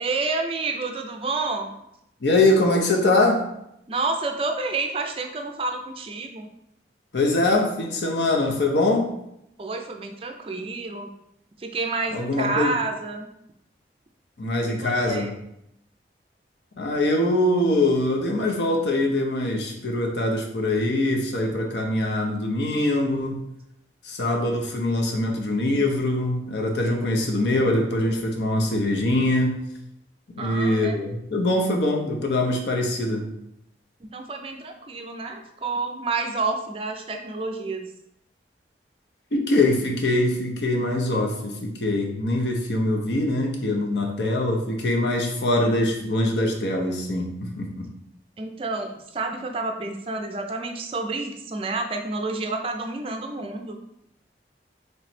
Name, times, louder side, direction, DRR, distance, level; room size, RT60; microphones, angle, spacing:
voice 1, 0.0-1.7 3.9-6.5 9.6-11.1 11.6-13.3 14.8-15.3 30.4-31.0 34.0-37.9 48.4-53.8, right 3 dB, 30° right, 4 dB, 0.4 m, -29 dB
voice 2, 2.2-3.4 7.1-9.1 12.1-12.7 14.4-15.3 16.8-23.4 24.0-29.6 30.4-33.3 39.3-47.9, left 1 dB, 75° left, 1 dB, 0.7 m, -23 dB
3.3 x 3.0 x 4.2 m, 0.81 s
head